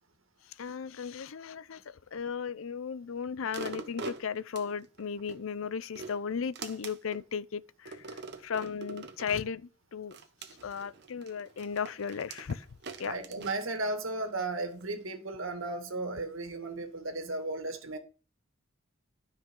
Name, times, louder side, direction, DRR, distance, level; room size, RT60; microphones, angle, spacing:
voice 1, 0.6-1.8 2.1-8.0 8.4-10.2 10.6-12.6 13.0-13.1, left 6 dB, 80° left, 0.5 m, -35 dB
sound 1, 3.5-5.4 5.8-7.2 7.9-9.5 10.1-14.3 14.8-14.9, right 4 dB, 55° right, 1.0 m, -44 dB
voice 2, 13.0-18.0, right 2 dB, 80° right, 2.0 m, -35 dB
12.5 x 5.6 x 3.7 m
head